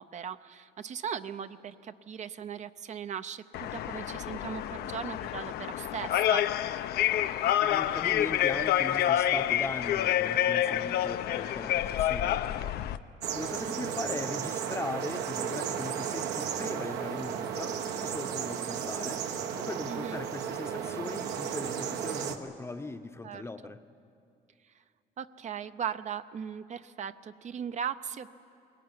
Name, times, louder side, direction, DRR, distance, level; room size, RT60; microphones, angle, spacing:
voice 1, 0.0-6.4 19.9-20.2 23.2-23.4 25.2-28.3, right 8 dB, 45° right, 11 dB, 0.6 m, -38 dB
sound 1, 3.5-13.0, left 12 dB, 70° left, 0.7 m, -28 dB
voice 2, 7.6-12.8 13.3-23.8, left 3 dB, 15° left, 9 dB, 0.8 m, -39 dB
sound 2, 13.2-22.4, right 7 dB, 85° right, 1.4 m, -34 dB
20.5 x 17.5 x 9.6 m, 2.5 s
cardioid pair, 110°, 17 cm